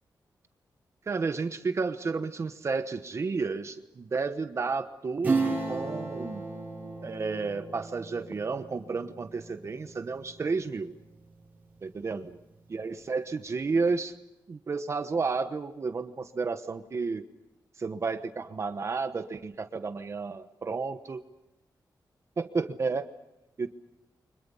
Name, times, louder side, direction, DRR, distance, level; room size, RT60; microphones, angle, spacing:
voice 1, 1.1-6.4 7.0-10.9 11.8-12.4 12.7-14.1 14.5-17.2 17.8-21.2 22.4-23.1 23.6-23.7, right 4 dB, 40° right, 9 dB, 1.1 m, -31 dB
Acoustic guitar / Strum, 5.2-11.4 11.8-11.9, right 3 dB, 20° right, 7.3 m, -34 dB
30.0 x 25.0 x 5.6 m, 0.93 s
wide cardioid pair, 160°, 8 cm